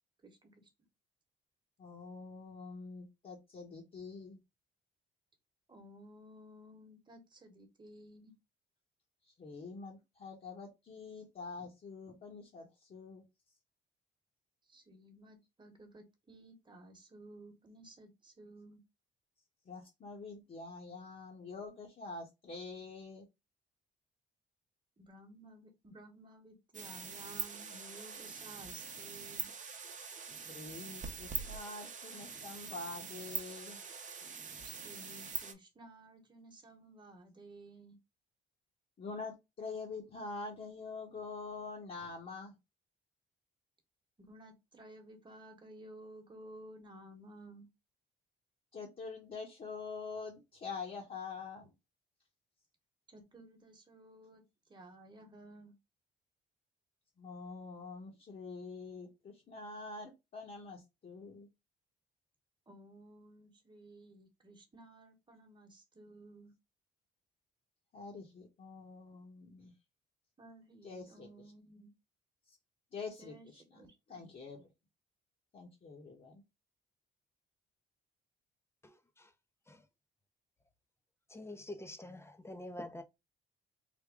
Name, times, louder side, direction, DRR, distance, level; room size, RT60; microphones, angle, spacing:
voice 1, 0.2-0.7 5.7-8.4 14.6-18.8 25.0-29.5 34.6-38.0 44.2-47.7 53.1-54.4 54.7-55.7 62.7-66.5 70.4-71.9 73.2-74.3, right 1 dB, 25° right, 1.2 m, -55 dB
voice 2, 1.8-4.4 9.4-13.2 19.7-23.3 30.5-33.8 39.0-42.5 48.7-51.7 57.2-61.5 67.9-69.7 70.8-71.3 72.9-73.6 74.1-74.7 75.5-76.4, left 4 dB, 45° left, 1.1 m, -46 dB
sound 1, 26.7-35.5, right 6 dB, 40° right, 0.8 m, -43 dB
voice 3, 78.8-79.3 81.3-83.0, left 1 dB, 15° left, 0.6 m, -46 dB
3.5 x 2.2 x 3.5 m
cardioid pair, 90°, 20 cm